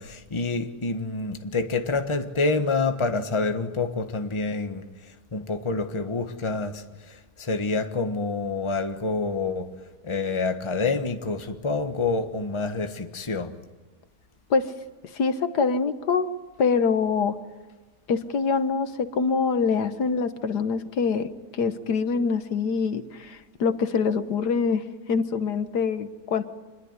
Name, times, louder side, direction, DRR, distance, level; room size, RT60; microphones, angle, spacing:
voice 1, 0.0-4.9 5.3-9.7 10.0-13.5, left 3 dB, 20° left, 1.2 m, -27 dB
voice 2, 15.1-16.3 16.6-17.4 18.1-26.4, left 5 dB, 80° left, 1.8 m, -25 dB
26.5 x 21.5 x 9.7 m
omnidirectional pair, 1.7 m